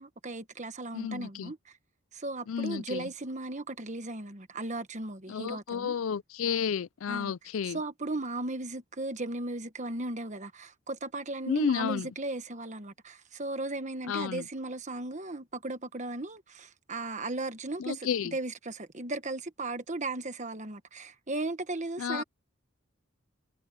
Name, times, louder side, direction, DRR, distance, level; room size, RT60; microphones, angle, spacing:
voice 1, 0.0-1.7 2.1-5.9 7.1-7.3 7.7-22.2, right 2 dB, 35° right, 1.4 m, -36 dB
voice 2, 0.9-1.5 2.5-3.1 5.3-7.8 11.5-12.1 14.1-14.5 17.8-18.3 22.0-22.2, left 7 dB, 70° left, 0.4 m, -32 dB
head